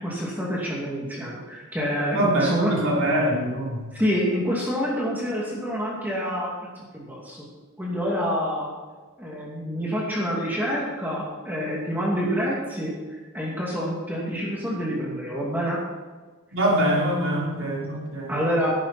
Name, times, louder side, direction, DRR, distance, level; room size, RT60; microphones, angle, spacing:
voice 1, 0.0-2.8 3.9-7.5 7.8-8.7 9.2-15.8 18.3-18.7, equal, 10° right, -5 dB, 2.5 m, -27 dB
voice 2, 2.1-3.9 16.5-18.4, right 1 dB, 60° right, -3 dB, 4.1 m, -24 dB
14.0 x 11.5 x 4.4 m, 1.4 s
head